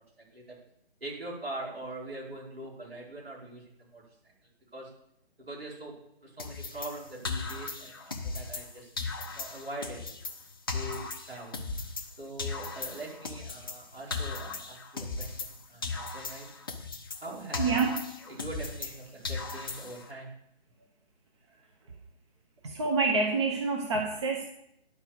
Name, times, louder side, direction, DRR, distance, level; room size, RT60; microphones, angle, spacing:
voice 1, 1.0-4.0 4.7-4.9 5.5-5.9 6.2-8.9 9.3-10.1 10.7-11.6 12.2-16.5 17.2-17.8 18.3-20.3, right 1 dB, 65° right, -3 dB, 4.6 m, -42 dB
sound 1, 6.4-8.7 9.0-12.1 12.4-15.6 15.8-19.0 19.2-20.1, left 4 dB, 20° left, 0.6 m, -37 dB
voice 2, 17.6-18.0 22.6-24.5, right 4 dB, 25° right, 2 dB, 0.8 m, -27 dB
11.0 x 4.7 x 7.1 m, 0.76 s
figure-of-eight pair, 150°, 32 cm